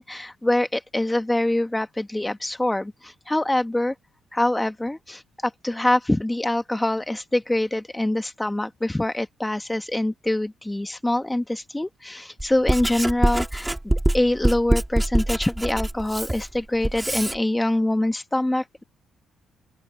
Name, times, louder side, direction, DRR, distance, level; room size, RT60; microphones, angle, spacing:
voice 1, 0.0-3.9 4.3-13.7 14.1-18.8, left 1 dB, 10° left, 1.7 m, -24 dB
Writing, 12.4-17.4, right 1 dB, 10° right, 3.5 m, -24 dB
open air
cardioid pair, 90°, 0 cm